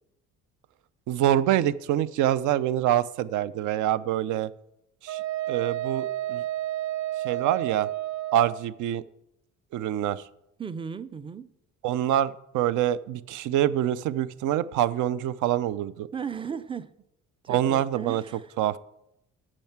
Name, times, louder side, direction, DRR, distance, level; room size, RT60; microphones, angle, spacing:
voice 1, 1.1-4.5 5.0-5.2 5.5-6.4 7.2-7.9 8.3-9.0 9.7-10.2 11.8-16.1 17.5-18.2 18.6-18.8, right 12 dB, 70° right, 0.5 m, -25 dB
Wind instrument woodwind instrument, 5.1-8.6, right 14 dB, 90° right, 0.9 m, -31 dB
voice 2, 10.6-11.5 16.1-16.9 17.4-18.5, right 6 dB, 15° right, 0.4 m, -36 dB
8.9 x 6.5 x 5.9 m
cardioid pair, 110°, 31 cm